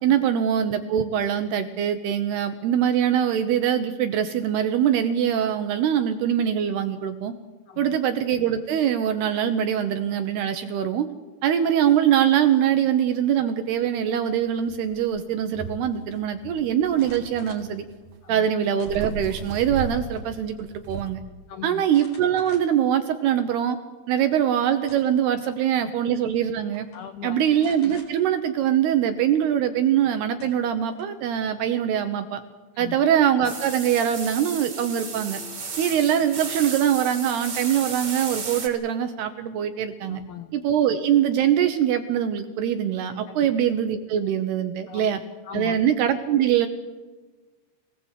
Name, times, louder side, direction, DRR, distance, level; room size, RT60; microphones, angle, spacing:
voice 1, 0.0-7.3 7.8-11.1 11.4-17.8 18.3-21.2 21.6-23.8 24.1-26.9 27.2-32.4 32.8-35.4 35.8-40.2 40.5-45.2 45.5-46.7, right 9 dB, 75° right, 8 dB, 2.5 m, -23 dB
voice 2, 7.7-8.0 18.2-18.5 21.5-21.9 25.4-25.5 25.8-25.9 26.9-27.4 32.7-33.0 40.1-40.5 43.3-43.5 44.9-45.8, left 10 dB, 80° left, 8 dB, 2.2 m, -39 dB
sound 1, 13.9-14.0 14.5-15.8 16.1-18.4 18.8-21.2, right 5 dB, 60° right, 3.2 m, -36 dB
sound 2, 16.9-17.7 18.8-19.4 19.8-20.3 20.6-20.7 21.9-22.9 23.4-23.5 24.6-25.3 26.3-26.4 26.7-27.0 27.6-28.1 29.9-30.0 30.4-31.2, left 2 dB, 45° left, 5.9 m, -49 dB
sound 3, 33.4-38.7, right 4 dB, 30° right, 3.6 m, -34 dB
25.5 x 18.5 x 8.3 m, 1.3 s
omnidirectional pair, 5.7 m